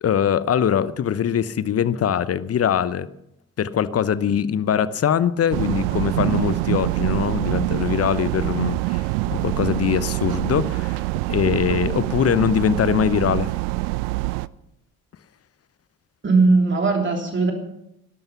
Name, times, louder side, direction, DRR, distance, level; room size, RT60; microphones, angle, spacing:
voice 1, 0.0-3.1 3.6-11.0 11.3-13.5, left 8 dB, 35° left, 0.9 m, -22 dB
sound 1, 5.5-14.5, right 22 dB, 65° right, 0.6 m, -25 dB
voice 2, 16.2-17.5, right 3 dB, 30° right, 3.2 m, -18 dB
18.5 x 12.5 x 5.8 m
figure-of-eight pair, 40°, 41 cm